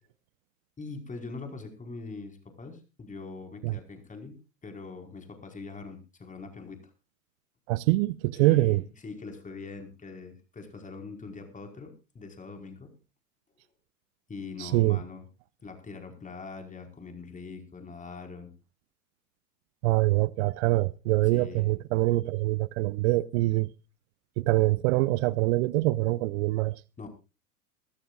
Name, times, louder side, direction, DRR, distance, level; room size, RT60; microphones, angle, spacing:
voice 1, 0.8-6.8 8.4-12.9 14.3-15.2 15.6-18.5 21.3-21.7 27.0-27.1, left 4 dB, 15° left, 4.7 m, -42 dB
voice 2, 7.7-8.8 14.6-15.0 19.8-23.7 24.4-26.8, right 19 dB, 45° right, 0.6 m, -24 dB
23.0 x 14.0 x 2.5 m
hypercardioid pair, 95°, 46 cm